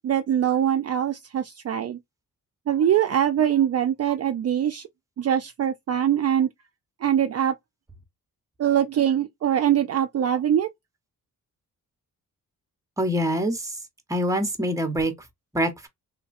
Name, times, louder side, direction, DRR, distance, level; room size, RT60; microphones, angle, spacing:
voice 1, 0.0-2.0 2.7-4.9 5.2-6.5 7.0-7.5 8.6-10.7, right 10 dB, 45° right, 0.4 m, -23 dB
voice 2, 13.0-13.8 14.1-15.1 15.5-15.9, equal, 10° right, 0.9 m, -25 dB
3.1 x 2.2 x 2.5 m
cardioid pair, 85°, 35 cm